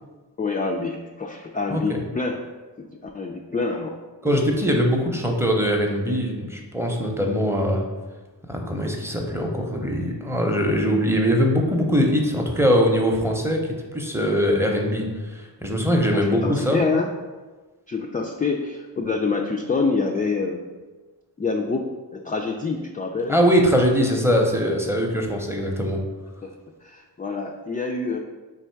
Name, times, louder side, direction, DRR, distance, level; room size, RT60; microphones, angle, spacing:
voice 1, 0.4-2.4 2.8-4.0 4.2-4.4 16.1-17.1 17.9-20.7 21.4-23.4 26.4-26.5 26.8-28.2, left 4 dB, 20° left, 1 dB, 0.3 m, -26 dB
voice 2, 4.2-7.8 8.5-16.8 23.3-26.0, equal, 5° right, 1 dB, 0.7 m, -22 dB
3.4 x 2.5 x 4.5 m, 1.3 s
cardioid pair, 50°, 43 cm